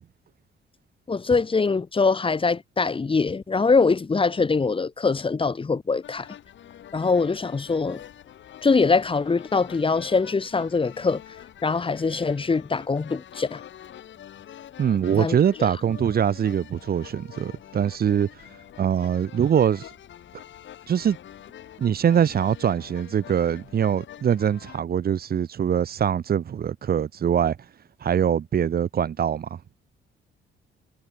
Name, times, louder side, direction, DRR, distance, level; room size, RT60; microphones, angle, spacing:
voice 1, 1.1-6.3 6.9-8.0 8.6-11.2 11.6-13.6 15.2-15.7, left 4 dB, 25° left, 1.6 m, -23 dB
sound 1, 6.0-24.8, left 11 dB, 70° left, 5.0 m, -45 dB
voice 2, 14.8-18.3 18.8-19.9 20.9-21.2 21.8-27.6 28.0-29.6, right 8 dB, 50° right, 1.4 m, -23 dB
cardioid pair, 90°, 20 cm